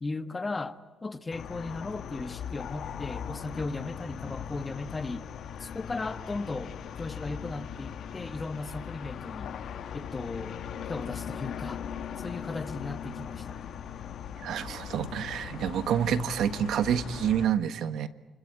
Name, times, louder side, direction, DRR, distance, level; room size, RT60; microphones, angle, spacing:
voice 1, 0.0-5.2 5.6-9.6 9.9-10.6 10.9-11.8 12.2-13.6, left 3 dB, 25° left, 1.5 m, -36 dB
sound 1, 1.3-17.4, left 8 dB, 65° left, 2.0 m, -39 dB
voice 2, 14.4-18.1, right 9 dB, 75° right, 1.5 m, -28 dB
29.5 x 22.0 x 8.9 m
cardioid pair, 90°, 0 cm